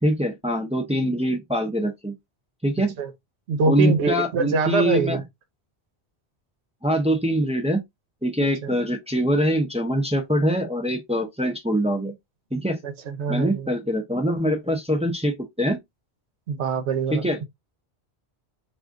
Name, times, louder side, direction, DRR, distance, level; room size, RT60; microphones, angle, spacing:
voice 1, 0.0-2.1 2.6-3.0 3.7-5.2 6.8-7.8 8.2-12.1 12.5-12.8 13.3-15.8 17.1-17.4, equal, 10° right, 0.3 m, -23 dB
voice 2, 3.5-5.2 8.4-8.7 12.8-13.7 16.5-17.3, right 5 dB, 85° right, 1.0 m, -24 dB
2.5 x 2.4 x 3.5 m
omnidirectional pair, 1.1 m